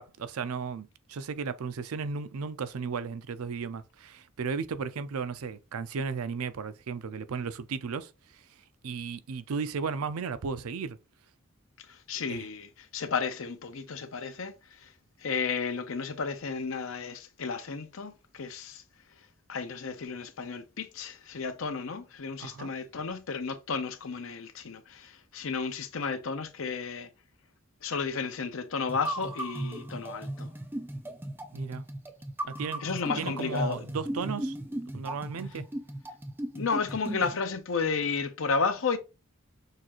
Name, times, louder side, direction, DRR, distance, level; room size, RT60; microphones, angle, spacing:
voice 1, 0.0-8.4 8.8-11.0 12.3-12.5 22.4-22.7 31.5-31.8 32.4-32.8 33.2-34.6 34.9-35.7, right 5 dB, 90° right, 0.5 m, -35 dB
voice 2, 11.8-14.9 15.2-18.8 19.5-27.1 27.8-30.5 32.8-33.8 36.5-39.0, left 5 dB, 65° left, 0.6 m, -33 dB
sound 1, 28.9-37.4, right 1 dB, 10° right, 0.5 m, -36 dB
6.4 x 2.4 x 2.9 m
head